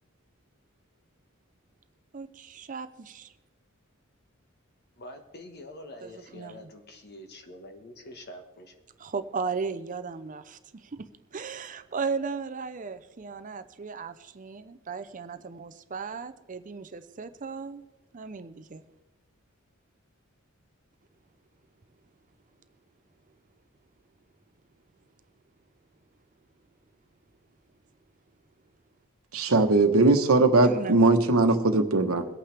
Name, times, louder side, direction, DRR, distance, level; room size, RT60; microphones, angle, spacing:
voice 1, 2.1-3.3 6.0-6.7 9.0-17.8 18.1-18.8 30.7-30.9, right 5 dB, 35° right, 0.5 m, -36 dB
voice 2, 5.0-8.7, left 1 dB, 50° left, 1.5 m, -45 dB
voice 3, 29.3-32.3, right 2 dB, 85° right, 1.2 m, -20 dB
23.0 x 8.8 x 3.4 m
head